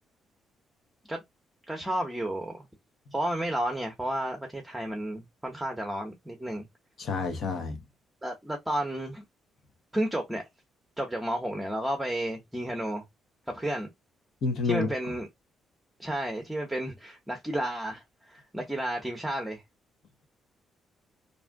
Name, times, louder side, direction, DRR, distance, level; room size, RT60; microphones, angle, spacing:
voice 1, 1.7-2.6 3.1-6.7 8.2-9.2 9.9-10.4 11.0-13.0 13.5-13.9 14.6-15.3 16.0-19.6, right 1 dB, 5° right, 0.8 m, -32 dB
voice 2, 7.0-7.8 14.4-14.9, left 4 dB, 60° left, 0.9 m, -29 dB
2.6 x 2.3 x 3.5 m
cardioid pair, 90°, 0 cm